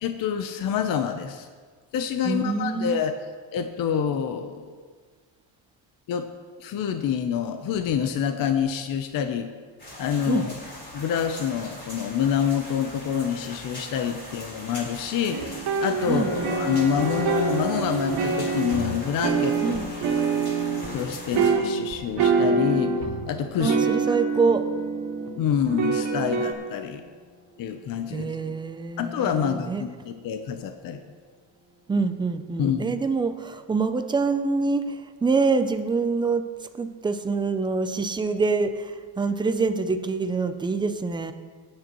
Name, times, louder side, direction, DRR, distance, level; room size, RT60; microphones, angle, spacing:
voice 1, 0.0-1.5 1.9-3.1 3.5-4.7 6.1-6.3 6.6-9.5 10.0-10.5 10.9-19.8 20.7-22.9 23.3-23.8 24.1-24.2 25.4-27.0 27.6-28.3 29.0-31.0 32.6-33.0, left 8 dB, 45° left, 7 dB, 0.7 m, -27 dB
voice 2, 2.2-3.0 10.3-10.5 16.1-16.3 19.6-19.9 23.6-24.7 28.1-29.8 31.9-41.3, right 4 dB, 10° right, 8 dB, 0.3 m, -25 dB
sound 1, 9.8-21.5, left 1 dB, 20° left, 4.1 m, -41 dB
sound 2, 15.3-20.9 21.3-23.3 23.6-25.3 25.7-26.5, right 4 dB, 60° right, 2.2 m, -25 dB
sound 3, 16.0-31.2 31.7-32.1, left 2 dB, 80° left, 3.6 m, -42 dB
18.5 x 9.6 x 3.0 m, 1.5 s
cardioid pair, 150°, 48 cm